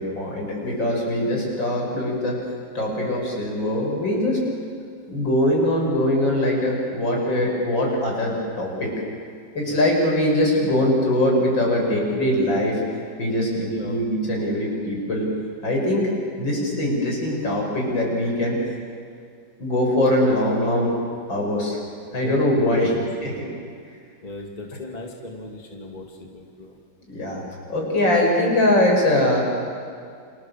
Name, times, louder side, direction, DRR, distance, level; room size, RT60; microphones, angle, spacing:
voice 1, 0.0-2.4 2.7-4.4 5.1-8.9 9.5-12.8 13.2-15.3 15.6-18.6 19.6-20.9 21.3-21.8 22.1-22.9 23.2-23.3 27.1-27.4 27.7-29.4, left 1 dB, 80° left, -1 dB, 7.5 m, -22 dB
voice 2, 13.7-14.0 22.1-22.4 22.7-23.4 24.2-26.8, left 2 dB, 20° left, 0 dB, 2.6 m, -37 dB
29.0 x 27.5 x 7.5 m, 2.2 s
omnidirectional pair, 2.0 m